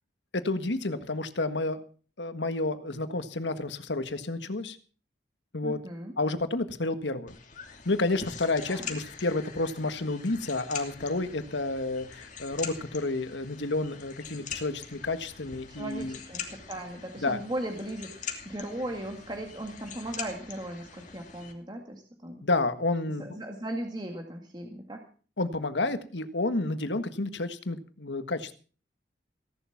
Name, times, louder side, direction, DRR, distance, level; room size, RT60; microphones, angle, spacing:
voice 1, 0.3-1.8 2.2-4.8 5.5-5.8 6.2-7.4 7.8-16.2 17.2-17.4 22.4-23.2 25.4-28.5, left 2 dB, 90° left, 10 dB, 1.6 m, -30 dB
voice 2, 5.6-6.1 8.7-8.9 15.7-22.4 23.1-25.0, right 1 dB, 25° right, 2 dB, 2.0 m, -37 dB
sound 1, 7.3-21.5, left 6 dB, 45° left, 2.8 m, -43 dB
17.0 x 11.5 x 5.9 m, 0.39 s
head